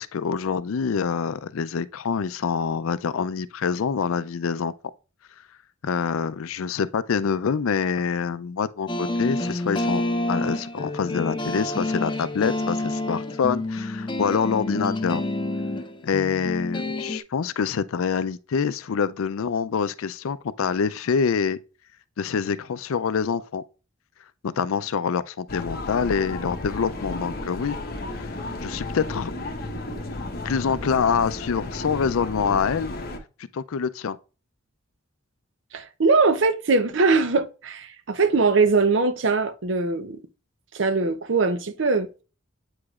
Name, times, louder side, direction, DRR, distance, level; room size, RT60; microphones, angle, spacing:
voice 1, 0.0-4.7 5.8-10.0 10.3-15.2 16.0-21.6 22.2-23.6 24.4-27.8 28.1-28.3 28.6-29.3 30.4-32.9 33.5-34.2, left 6 dB, 85° left, 0.4 m, -26 dB
sound 1, 8.9-17.2, left 1 dB, 25° left, 0.5 m, -28 dB
sound 2, 25.5-33.2, left 2 dB, 45° left, 1.0 m, -33 dB
voice 2, 35.7-40.2 40.7-42.2, right 4 dB, 60° right, 0.6 m, -21 dB
8.3 x 4.9 x 2.4 m
head